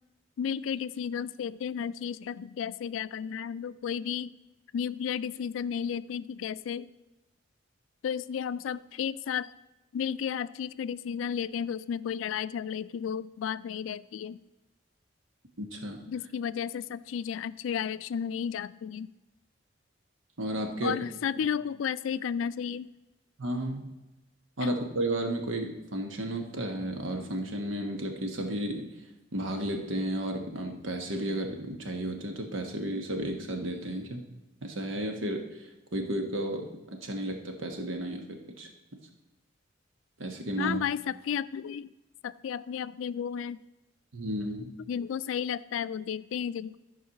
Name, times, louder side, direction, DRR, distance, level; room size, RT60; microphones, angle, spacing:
voice 1, 0.4-4.3 4.7-6.9 8.0-9.5 9.9-14.4 16.1-19.1 20.8-22.9 24.6-24.7 40.6-41.9 42.2-43.6 44.9-46.8, left 8 dB, 85° left, 17 dB, 0.3 m, -33 dB
voice 2, 15.6-16.0 20.4-21.0 21.4-21.5 23.4-23.9 24.6-28.9 29.3-34.2 34.6-35.6 35.9-38.7 40.2-40.8 44.1-44.7, right 1 dB, 90° right, 4 dB, 1.3 m, -33 dB
12.5 x 4.7 x 5.8 m, 1.0 s
head